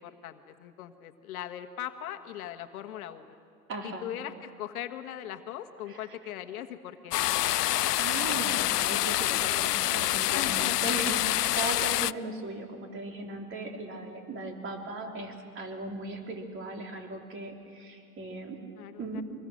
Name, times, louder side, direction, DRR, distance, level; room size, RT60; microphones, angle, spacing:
voice 1, 0.0-3.3 3.8-7.1 10.3-11.1 18.8-19.2, left 11 dB, 65° left, 7 dB, 1.5 m, -39 dB
voice 2, 3.7-4.1 5.9-6.2 7.1-18.6 19.0-19.2, right 2 dB, 25° right, 3 dB, 3.4 m, -38 dB
sound 1, 7.1-12.1, left 15 dB, 85° left, 0.5 m, -27 dB
25.5 x 20.5 x 6.4 m, 2.3 s
hypercardioid pair, 115°, 45 cm